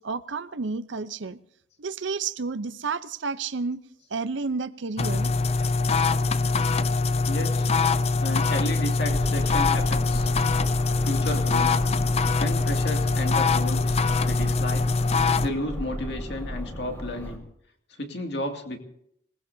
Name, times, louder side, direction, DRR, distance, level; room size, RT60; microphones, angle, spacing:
voice 1, 0.0-1.4 1.8-3.8 4.1-5.3, right 4 dB, 75° right, 0.7 m, -31 dB
sound 1, 5.0-15.5, left 3 dB, 35° left, 0.5 m, -23 dB
voice 2, 7.3-7.7 8.2-10.3 11.0-11.9 12.4-14.0 14.3-14.9 15.4-17.4 18.0-18.8, left 1 dB, 60° left, 2.4 m, -32 dB
sound 2, 9.1-17.4, equal, 15° left, 2.9 m, -35 dB
25.5 x 19.0 x 2.8 m
head